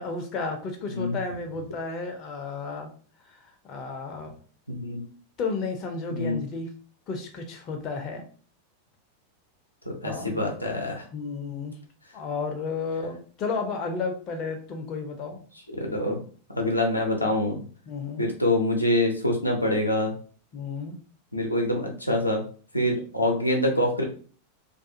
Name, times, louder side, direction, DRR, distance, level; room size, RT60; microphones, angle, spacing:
voice 1, 0.0-2.9 3.3-4.3 5.4-6.7 7.1-8.2 10.0-10.4 11.1-11.7 12.1-15.4 17.9-18.3 20.5-21.0, left 4 dB, 35° left, 4 dB, 0.5 m, -32 dB
voice 2, 4.7-5.0 6.1-6.4 9.9-11.1 15.8-16.2 16.5-17.6 18.2-20.1 21.3-22.4 22.7-24.0, left 1 dB, 85° left, 0 dB, 0.6 m, -25 dB
2.4 x 2.3 x 2.6 m, 0.42 s
figure-of-eight pair, 90°, 0 cm